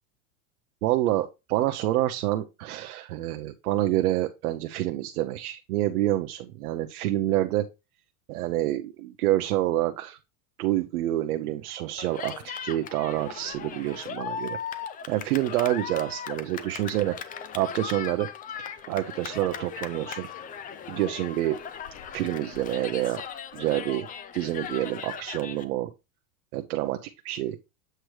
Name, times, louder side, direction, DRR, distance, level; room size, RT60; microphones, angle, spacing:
voice 1, 0.8-7.7 8.3-10.2 10.6-14.6 15.1-17.2 17.5-18.3 18.9-20.3 20.9-21.6 22.1-23.2 23.5-24.1 24.3-25.9 26.5-27.6, right 14 dB, 85° right, 7 dB, 0.8 m, -27 dB
Cheering, 12.0-25.6, left 7 dB, 20° left, 0.5 m, -38 dB
7.9 x 3.0 x 4.7 m, 0.26 s
supercardioid pair, 135°, 43 cm